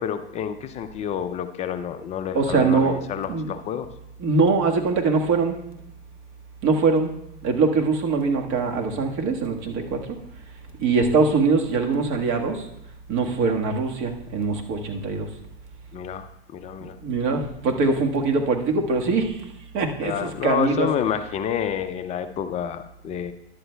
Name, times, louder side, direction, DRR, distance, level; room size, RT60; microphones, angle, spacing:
voice 1, 0.0-3.9 15.9-17.0 20.0-23.3, left 9 dB, 20° left, 9 dB, 0.4 m, -29 dB
voice 2, 2.3-3.0 3.3-3.5 4.2-5.6 6.6-7.1 7.4-10.2 10.8-12.7 13.1-15.3 16.8-19.4 19.7-20.9, right 4 dB, 40° right, 2 dB, 1.5 m, -22 dB
12.5 x 11.0 x 2.2 m, 0.82 s
hypercardioid pair, 120°, 31 cm